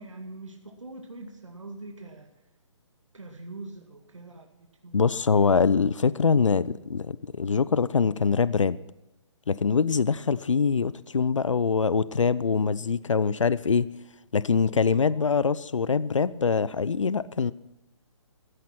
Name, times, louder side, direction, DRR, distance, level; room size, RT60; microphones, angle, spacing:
voice 1, 0.0-2.3 3.1-5.0 15.0-15.4, right 2 dB, 80° right, 3 dB, 2.1 m, -43 dB
voice 2, 4.9-8.8 9.5-13.9 14.3-17.5, left 5 dB, 80° left, 18 dB, 0.6 m, -24 dB
15.0 x 10.5 x 5.9 m, 0.96 s
figure-of-eight pair, 140°, 16 cm